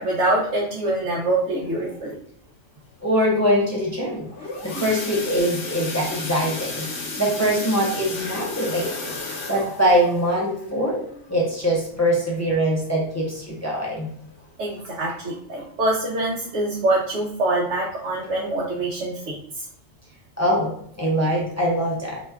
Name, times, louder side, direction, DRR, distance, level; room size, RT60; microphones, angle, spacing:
voice 1, 0.0-2.2 4.7-4.9 14.6-19.7, right 2 dB, 90° right, -4 dB, 1.0 m, -25 dB
voice 2, 3.0-4.3 4.6-6.9 7.2-11.0 11.3-14.1 20.4-20.7 21.0-22.2, equal, 20° left, -4 dB, 0.4 m, -23 dB
sound 1, 4.1-12.8 13.2-13.4 13.7-13.8 14.3-14.4, left 3 dB, 65° left, 1.0 m, -34 dB
2.9 x 2.2 x 3.4 m, 0.65 s
omnidirectional pair, 1.2 m